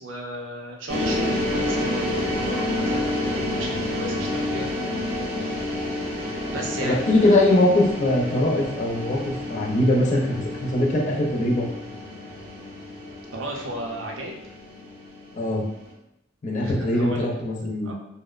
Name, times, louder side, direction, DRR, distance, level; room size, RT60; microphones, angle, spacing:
voice 1, 0.0-4.7 5.4-5.6 6.5-7.2 13.3-14.4 16.6-17.3 17.8-17.9, right 1 dB, 85° right, 0 dB, 0.5 m, -34 dB
sound 1, 0.9-15.8, left 1 dB, 35° right, 0.7 m, -29 dB
voice 2, 6.8-11.7 15.3-15.6 16.4-17.9, left 1 dB, 40° left, -1 dB, 0.4 m, -21 dB
2.5 x 2.0 x 2.3 m, 0.84 s
head